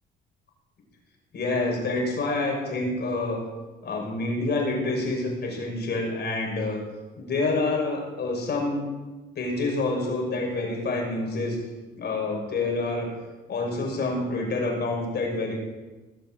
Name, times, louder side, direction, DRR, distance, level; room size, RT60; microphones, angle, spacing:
voice 1, 1.3-3.4 3.8-6.8 7.2-8.8 9.4-11.6 11.9-13.1 13.5-15.5, left 2 dB, 55° left, 0 dB, 5.9 m, -27 dB
19.0 x 7.4 x 7.6 m, 1.2 s
cardioid pair, 90°, 20 cm